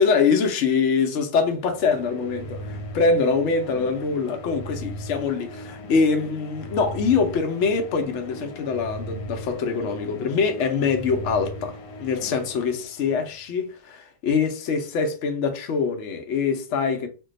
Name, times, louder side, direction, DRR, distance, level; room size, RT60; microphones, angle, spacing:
voice 1, 0.0-17.1, left 5 dB, 65° left, 0.7 m, -24 dB
sound 1, 1.5-13.3, equal, 85° left, 1.2 m, -38 dB
2.7 x 2.2 x 3.7 m
omnidirectional pair, 1.8 m